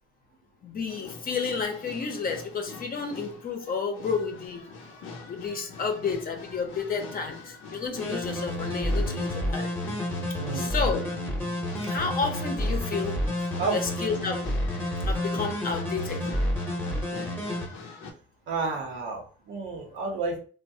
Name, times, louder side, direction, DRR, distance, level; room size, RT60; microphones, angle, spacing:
voice 1, 0.6-4.6 5.3-9.7 10.5-11.1 11.8-13.2 13.7-14.5 15.0-16.3, left 5 dB, 45° left, 0.7 m, -31 dB
sound 1, 0.9-18.1, left 3 dB, 90° left, 0.5 m, -43 dB
sound 2, 8.0-17.7, equal, 10° left, 0.8 m, -30 dB
voice 2, 10.3-10.8 13.6-13.7 18.5-20.4, right 4 dB, 80° right, 0.8 m, -31 dB
3.0 x 2.1 x 2.7 m
cardioid pair, 90°, 20 cm